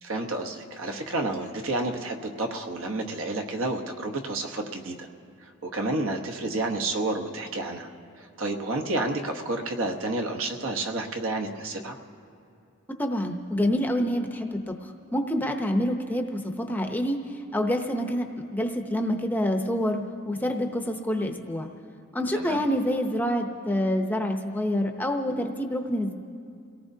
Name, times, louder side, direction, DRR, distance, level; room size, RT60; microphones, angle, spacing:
voice 1, 0.0-5.1 5.4-12.0 22.3-22.6, right 2 dB, 65° right, 4 dB, 1.1 m, -30 dB
voice 2, 13.0-17.2 17.5-18.3 18.5-21.7 22.1-26.1, equal, 10° left, 4 dB, 0.7 m, -27 dB
29.5 x 18.0 x 2.7 m, 2.4 s
head